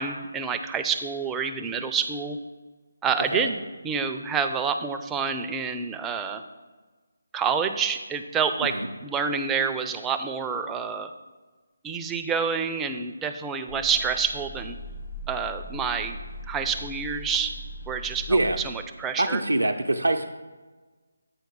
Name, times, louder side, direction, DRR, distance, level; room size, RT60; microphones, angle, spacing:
voice 1, 0.0-2.4 3.0-6.4 7.3-8.7 9.0-11.1 11.8-14.8 15.3-16.2 16.5-17.5 17.9-19.4, right 6 dB, 10° right, 6 dB, 0.4 m, -28 dB
sound 1, 13.7-19.0, equal, 50° left, 0.9 m, -40 dB
voice 2, 19.2-20.3, right 2 dB, 85° right, 4 dB, 0.5 m, -24 dB
8.2 x 4.6 x 4.6 m, 1.3 s
figure-of-eight pair, 155°, 0 cm